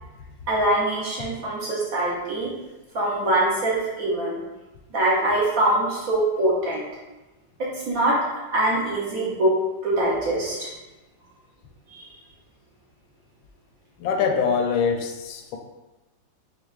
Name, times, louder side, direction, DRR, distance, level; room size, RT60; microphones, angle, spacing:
voice 1, 0.5-2.5 2.9-4.4 4.9-6.8 7.6-8.2 8.5-9.5 9.8-10.7 11.9-12.1, right 1 dB, 60° right, -5 dB, 1.0 m, -23 dB
voice 2, 14.0-15.6, left 6 dB, 80° left, 4 dB, 1.3 m, -24 dB
6.3 x 2.3 x 2.4 m, 1.1 s
omnidirectional pair, 2.1 m